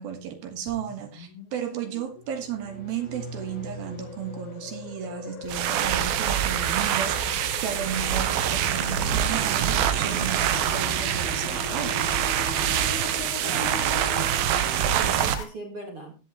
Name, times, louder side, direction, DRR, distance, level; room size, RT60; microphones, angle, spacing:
voice 1, 0.0-12.1, right 8 dB, 65° right, 2.9 m, -34 dB
sound 1, 0.7-15.4, left 6 dB, 90° left, 4.8 m, -39 dB
sound 2, 2.1-6.0, equal, 30° left, 2.5 m, -43 dB
sound 3, 5.4-15.3, right 10 dB, 80° right, 2.1 m, -25 dB
voice 2, 13.4-14.3 15.0-16.2, right 2 dB, 45° right, 2.0 m, -39 dB
14.0 x 10.5 x 3.1 m
omnidirectional pair, 5.6 m